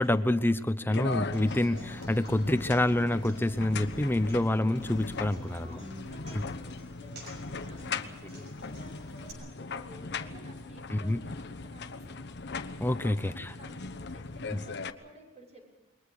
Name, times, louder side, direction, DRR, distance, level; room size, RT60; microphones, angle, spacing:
voice 1, 0.0-5.8 6.3-6.4 10.9-11.2 12.8-13.5, left 1 dB, 10° left, 11 dB, 0.8 m, -27 dB
sound 1, 0.9-14.9, left 4 dB, 55° left, 1.0 m, -39 dB
Human voice / Acoustic guitar, 1.3-9.3, equal, 60° right, 6.1 m, -51 dB
voice 2, 5.4-12.3 13.1-15.8, equal, 35° right, 0 dB, 6.3 m, -53 dB
28.5 x 22.5 x 5.0 m, 1.1 s
head